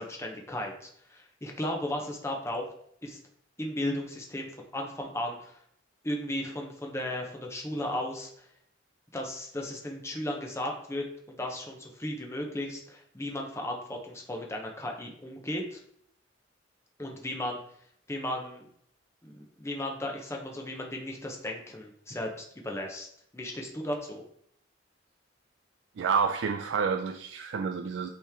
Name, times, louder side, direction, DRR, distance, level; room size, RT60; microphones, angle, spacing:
voice 1, 0.0-2.7 3.0-3.2 3.6-5.6 6.0-8.5 9.1-15.8 17.0-17.6 18.1-18.6 19.2-23.1 23.3-24.2, left 1 dB, 15° left, 1 dB, 0.8 m, -35 dB
voice 2, 26.0-28.1, right 6 dB, 75° right, 6 dB, 0.4 m, -29 dB
8.4 x 3.2 x 3.5 m, 0.68 s
head